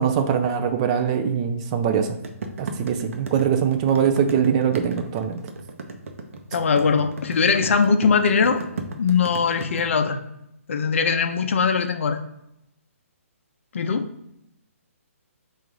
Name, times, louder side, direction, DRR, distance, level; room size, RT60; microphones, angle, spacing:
voice 1, 0.0-2.1 2.6-5.4, right 7 dB, 25° right, 6 dB, 0.4 m, -22 dB
sound 1, 2.2-9.8, right 4 dB, 65° right, 0.7 m, -34 dB
voice 2, 6.5-8.7 9.0-10.2 10.7-12.2 13.7-14.1, left 5 dB, 55° left, 8 dB, 0.5 m, -21 dB
3.6 x 2.4 x 4.6 m, 0.81 s
hypercardioid pair, 150°, 8 cm